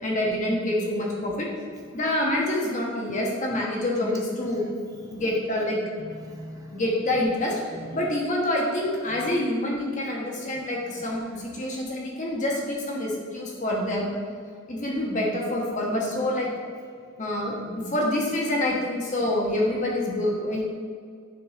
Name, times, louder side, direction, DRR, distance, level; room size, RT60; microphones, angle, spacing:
voice 1, 0.0-1.5 1.9-4.6 5.1-5.8 6.7-7.6 7.9-14.1 14.7-16.5 17.2-20.6, left 1 dB, 35° left, -2 dB, 1.2 m, -26 dB
voice 2, 6.0-6.8 7.7-8.0 9.1-9.3 19.2-19.3, right 1 dB, 15° right, 0 dB, 0.5 m, -42 dB
9.4 x 4.4 x 3.2 m, 2.1 s
head